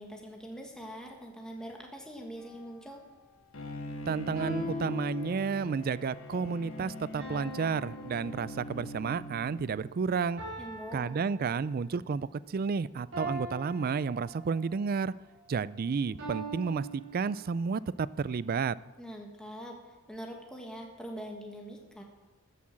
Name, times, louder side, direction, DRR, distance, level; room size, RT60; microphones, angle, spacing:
voice 1, 0.0-3.0 10.6-11.1 19.0-22.0, equal, 5° left, 0 dB, 1.6 m, -43 dB
sound 1, 2.4-2.8 4.4-5.8 7.2-9.0 10.4-12.0 13.1-14.7 16.2-17.8, left 1 dB, 60° right, 5.3 m, -42 dB
Bowed string instrument, 3.5-10.2, equal, 70° left, 1.5 m, -42 dB
voice 2, 4.1-10.4 10.9-15.1 15.5-18.8, right 5 dB, 45° right, 19 dB, 0.3 m, -31 dB
13.5 x 8.4 x 7.4 m, 1.2 s
head